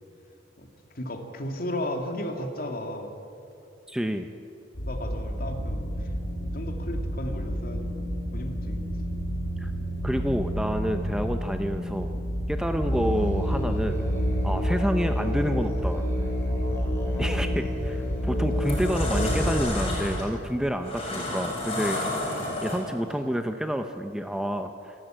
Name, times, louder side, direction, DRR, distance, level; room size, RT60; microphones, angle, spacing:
voice 1, 0.9-3.1 4.9-6.1 6.5-8.1 8.3-8.8 13.2-13.3 22.4-22.6, left 1 dB, 50° left, 4 dB, 2.5 m, -35 dB
voice 2, 3.9-4.3 9.6-9.7 10.0-12.1 12.5-14.1 14.4-16.0 17.2-22.0 22.6-24.9, equal, 5° right, 6 dB, 0.7 m, -29 dB
sound 1, 4.7-20.2, equal, 70° left, 2.7 m, -32 dB
Musical instrument, 12.8-19.6, left 1 dB, 15° left, 4.5 m, -28 dB
sound 2, 17.7-18.0 18.4-23.1, left 2 dB, 30° left, 6.5 m, -31 dB
27.5 x 13.0 x 9.0 m, 2.7 s
head